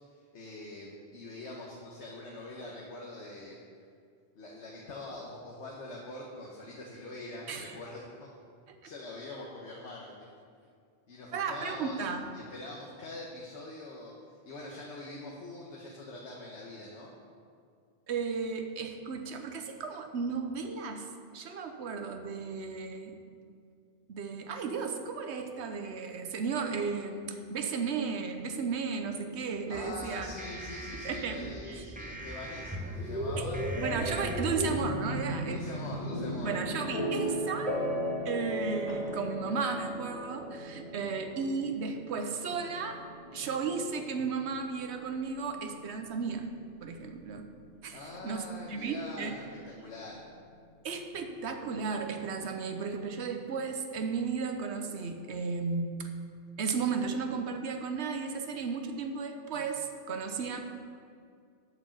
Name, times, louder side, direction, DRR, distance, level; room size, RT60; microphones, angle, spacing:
voice 1, 0.3-3.6 4.3-8.3 8.8-10.1 11.1-12.1 12.3-14.1 14.4-17.1 29.7-33.6 35.5-36.6 47.9-50.2, left 2 dB, 85° left, -2 dB, 1.3 m, -44 dB
voice 2, 11.3-12.2 18.1-21.1 21.3-23.2 24.1-30.3 30.9-31.8 33.4-33.5 33.8-35.6 36.4-37.7 38.2-43.0 43.3-46.5 46.8-47.5 47.8-49.4 50.8-56.1 56.6-60.6, right 5 dB, 80° right, 6 dB, 1.0 m, -34 dB
sound 1, 29.7-34.7, equal, 10° right, 0.4 m, -36 dB
sound 2, 34.7-48.4, equal, 35° left, 1.3 m, -37 dB
8.1 x 5.0 x 7.0 m, 2.3 s
omnidirectional pair, 1.1 m